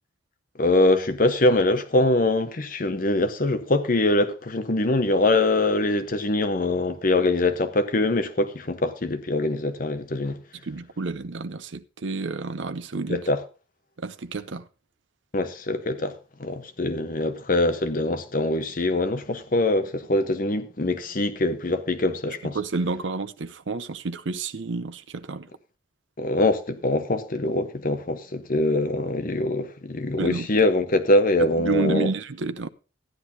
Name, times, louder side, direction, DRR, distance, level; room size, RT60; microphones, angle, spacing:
voice 1, 0.6-10.4 13.1-13.4 15.3-16.1 16.4-22.6 26.2-32.1, left 2 dB, 45° left, 0.9 m, -23 dB
voice 2, 10.6-13.3 14.0-14.7 22.3-25.5 30.2-30.5 31.4-32.7, right 3 dB, 75° right, 0.7 m, -30 dB
14.5 x 10.5 x 2.7 m
head